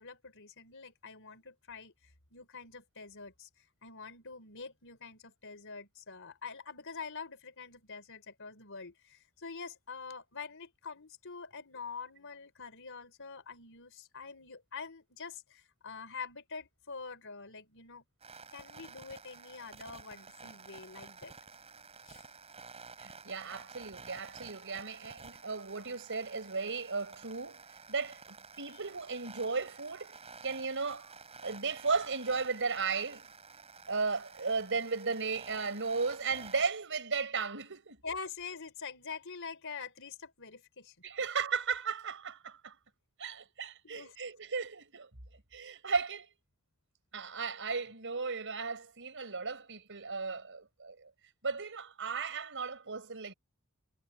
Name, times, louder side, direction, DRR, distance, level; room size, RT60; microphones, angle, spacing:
voice 1, 0.0-1.9 2.3-3.5 3.8-18.0 18.5-21.3 22.1-22.2 38.0-40.9 43.8-44.2, left 5 dB, 60° left, 4.6 m, -45 dB
sound 1, 18.2-36.7, right 4 dB, 30° right, 7.1 m, -51 dB
voice 2, 23.0-27.6 27.9-30.2 30.4-31.1 31.4-33.3 33.9-38.0 41.0-42.8 43.2-45.1 45.5-46.3 47.1-51.1 51.4-53.3, right 4 dB, 60° right, 5.1 m, -35 dB
head